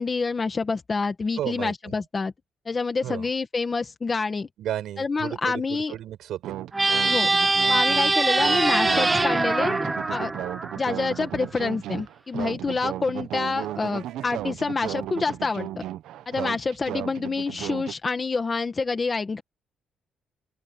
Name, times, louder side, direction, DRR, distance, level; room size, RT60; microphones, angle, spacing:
voice 1, 0.0-2.3 2.7-4.5 5.0-6.0 7.1-7.3 7.7-9.8 10.1-10.3 10.8-15.8 16.3-19.4, left 4 dB, 20° left, 1.8 m, -27 dB
voice 2, 1.4-1.9 3.0-3.3 4.6-6.6, right 12 dB, 65° right, 6.6 m, -33 dB
sound 1, 6.4-17.9, right 13 dB, 85° right, 0.8 m, -35 dB
sound 2, 6.7-11.2, right 3 dB, 15° right, 0.6 m, -23 dB
open air
cardioid pair, 180°, 0 cm